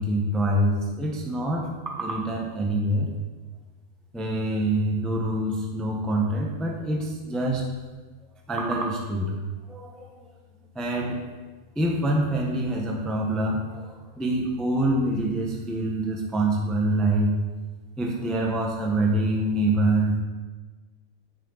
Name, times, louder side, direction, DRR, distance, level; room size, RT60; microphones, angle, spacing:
voice 1, 0.0-3.1 4.1-7.6 8.5-9.4 9.7-10.3 10.7-11.2 11.7-17.3 18.0-20.2, right 1 dB, ahead, -1 dB, 0.7 m, -25 dB
10.0 x 7.6 x 4.1 m, 1.3 s
omnidirectional pair, 2.4 m